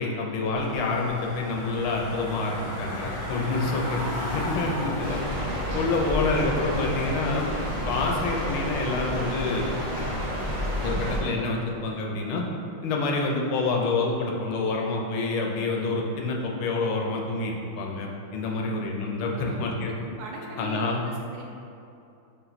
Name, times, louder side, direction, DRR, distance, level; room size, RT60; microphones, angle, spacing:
voice 1, 0.0-5.2 5.7-7.5 7.9-9.6 10.8-12.4 12.8-19.9 20.6-21.0, left 3 dB, 80° left, 0 dB, 1.4 m, -27 dB
Car / Engine, 0.6-8.8, equal, 65° left, 1.2 m, -36 dB
voice 2, 3.6-4.2 18.4-18.8 19.2-19.8 20.2-21.4, right 2 dB, 80° right, -1 dB, 1.4 m, -41 dB
sound 1, 5.0-11.2, equal, 20° right, 1.2 m, -30 dB
4.4 x 2.3 x 3.9 m, 2.7 s
omnidirectional pair, 2.4 m